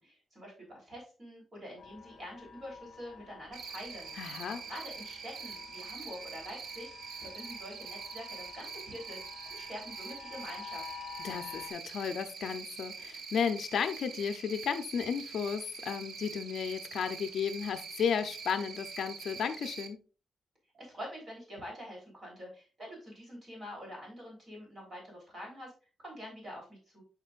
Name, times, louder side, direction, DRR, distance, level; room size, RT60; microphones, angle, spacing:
voice 1, 0.0-4.1 4.6-6.9 7.2-9.2 9.5-10.9 20.7-25.7 26.0-27.0, equal, 30° right, -2 dB, 3.4 m, -46 dB
sound 1, 1.8-11.7, left 7 dB, 40° left, 1.0 m, -50 dB
Cricket, 3.5-19.9, right 5 dB, 60° right, 0.8 m, -44 dB
voice 2, 4.2-4.6 11.2-20.0, left 7 dB, 55° left, 8 dB, 0.5 m, -33 dB
8.9 x 5.1 x 2.4 m, 0.35 s
wide cardioid pair, 170°, 0 cm